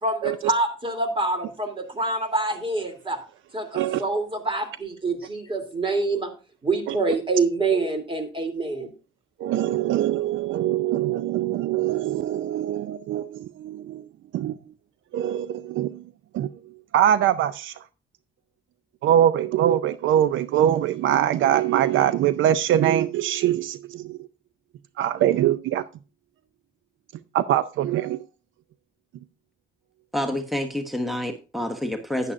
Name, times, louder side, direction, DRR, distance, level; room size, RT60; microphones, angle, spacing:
voice 1, 0.0-3.2 3.5-6.3 6.6-8.9, right 3 dB, 25° right, 2.9 m, -26 dB
voice 2, 9.4-14.0 14.3-14.6 15.1-16.0 16.3-16.5 16.9-17.7 19.0-24.2 25.0-25.8 27.3-28.2, right 11 dB, 75° right, 0.5 m, -23 dB
voice 3, 30.1-32.3, left 1 dB, ahead, 1.1 m, -28 dB
11.0 x 9.9 x 2.5 m
cardioid pair, 90°, 20 cm